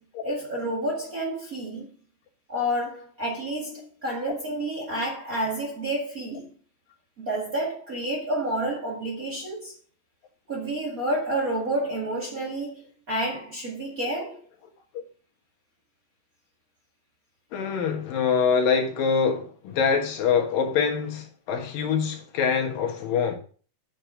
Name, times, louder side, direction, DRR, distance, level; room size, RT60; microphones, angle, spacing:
voice 1, 0.2-1.9 2.5-6.5 7.2-9.7 10.5-14.4, right 1 dB, 30° right, 1.8 m, -29 dB
voice 2, 17.5-23.4, left 6 dB, 80° left, 3.2 m, -24 dB
8.7 x 6.1 x 5.1 m
omnidirectional pair, 4.0 m